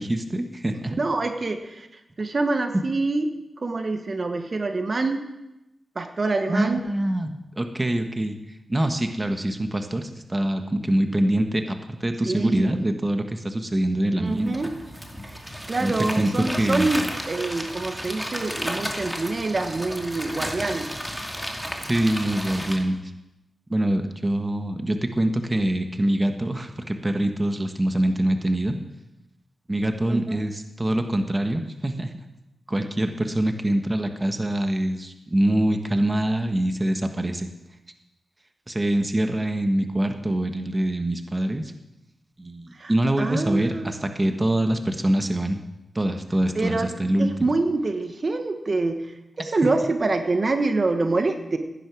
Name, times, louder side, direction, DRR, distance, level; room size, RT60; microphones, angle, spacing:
voice 1, 0.0-1.0 6.5-8.4 8.7-14.5 15.8-16.3 16.6-16.9 21.8-23.0 23.7-28.7 29.7-32.1 32.7-37.5 38.7-41.7 42.4-45.6 45.9-47.3, right 1 dB, 20° right, 6 dB, 1.4 m, -24 dB
voice 2, 1.0-3.3 3.6-5.2 5.9-6.9 12.2-12.7 14.2-14.7 15.2-15.4 15.7-20.9 30.1-30.4 42.7-42.9 43.2-44.0 46.5-46.9 47.2-51.6, right 3 dB, 45° right, 6 dB, 1.4 m, -26 dB
sound 1, 14.3-22.8, equal, 5° right, 2.5 m, -33 dB
16.0 x 10.5 x 6.2 m, 0.92 s
cardioid pair, 65°, 0 cm